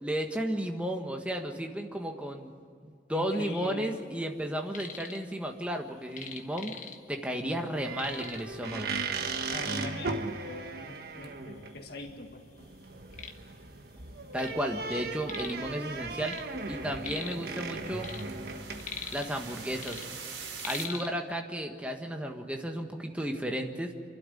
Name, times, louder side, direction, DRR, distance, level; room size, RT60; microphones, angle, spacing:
voice 1, 0.0-2.5 2.8-8.9 14.3-16.4 16.7-18.1 19.1-20.0 20.6-23.9, equal, 5° right, 3 dB, 1.5 m, -33 dB
voice 2, 3.1-4.0 9.5-12.7 14.9-15.0 20.9-21.2, left 1 dB, 55° left, 3 dB, 2.0 m, -42 dB
sound 1, 4.5-5.2 5.5-7.3 7.6-7.7 7.9-8.6 9.4-9.5 10.0-10.1 10.8-10.9 11.2-12.1 12.5-14.6 14.9-15.7 16.0-17.5 17.9-19.5 19.8-21.1, left 6 dB, 40° left, 1.4 m, -42 dB
sound 2, 7.7-20.2, right 3 dB, 50° right, 1.4 m, -38 dB
sound 3, 15.6-20.8, right 5 dB, 80° right, 3.9 m, -46 dB
27.5 x 12.5 x 9.2 m, 2.3 s
head